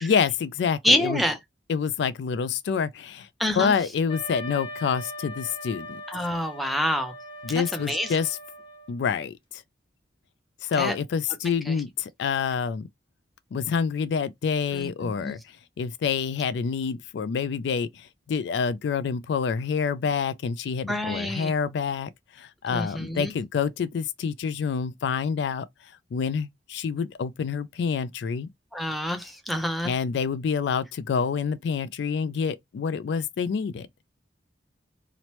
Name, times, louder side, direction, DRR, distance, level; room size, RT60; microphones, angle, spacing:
voice 1, 0.0-1.2 1.7-3.3 3.6-6.0 7.4-8.4 8.9-9.6 10.6-12.9 13.5-15.4 15.8-22.1 22.4-25.7 26.1-28.5 29.8-33.9, left 6 dB, 65° left, 0.3 m, -27 dB
voice 2, 0.8-1.4 3.4-3.7 6.1-7.1 7.7-8.2 10.8-11.0 11.7-11.8 14.7-15.3 20.9-21.5 22.7-23.3 28.7-29.9, left 1 dB, ahead, 0.4 m, -27 dB
Wind instrument woodwind instrument, 4.1-9.0, left 1 dB, 25° left, 0.9 m, -40 dB
2.9 x 2.0 x 2.9 m
head